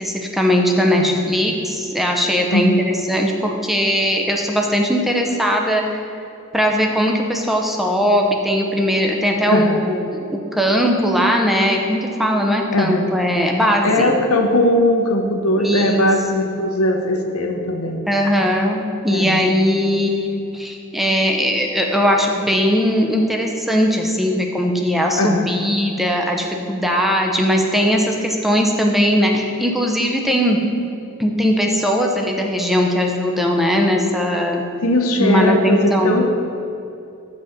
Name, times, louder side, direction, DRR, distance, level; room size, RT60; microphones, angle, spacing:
voice 1, 0.0-5.8 6.5-14.1 15.6-16.0 18.1-30.6 31.2-34.6 35.2-36.2, equal, ahead, 1 dB, 0.7 m, -19 dB
voice 2, 0.9-1.2 2.5-2.8 9.5-9.8 12.7-13.1 13.8-18.0 19.1-19.5 25.1-25.5 34.8-36.2, left 1 dB, 85° left, 4 dB, 0.9 m, -19 dB
7.5 x 4.1 x 6.4 m, 2.6 s
head